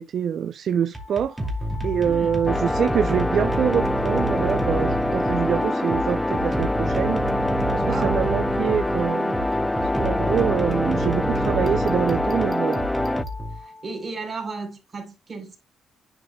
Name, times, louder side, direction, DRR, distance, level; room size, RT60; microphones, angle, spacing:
voice 1, 0.0-1.4 1.8-7.2 7.7-9.4 9.9-12.8, right 8 dB, 60° right, 0.4 m, -25 dB
Looped beat, 0.8-14.0, right 1 dB, 10° right, 2.5 m, -29 dB
voice 2, 2.0-2.3 7.8-8.2 13.5-15.6, right 4 dB, 30° right, 3.7 m, -34 dB
sound 1, 2.5-13.2, left 1 dB, 10° left, 0.3 m, -25 dB
11.0 x 4.9 x 2.2 m
cardioid pair, 105°, 0 cm